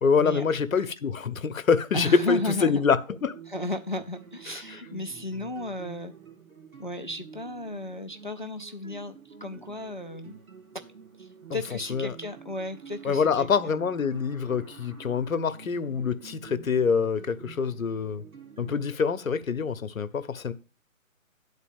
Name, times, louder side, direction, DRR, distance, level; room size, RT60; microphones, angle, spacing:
voice 1, 0.0-3.0 3.2-3.4 4.5-4.6 11.9-12.1 13.0-18.2 18.6-20.5, left 5 dB, 75° left, 1.0 m, -25 dB
voice 2, 1.9-2.8 3.5-6.1 6.8-10.4 11.2-13.7, left 2 dB, 40° left, 0.4 m, -34 dB
sound 1, 3.1-18.9, right 6 dB, 75° right, 1.9 m, -48 dB
9.8 x 4.1 x 7.1 m
hypercardioid pair, 170°, 42 cm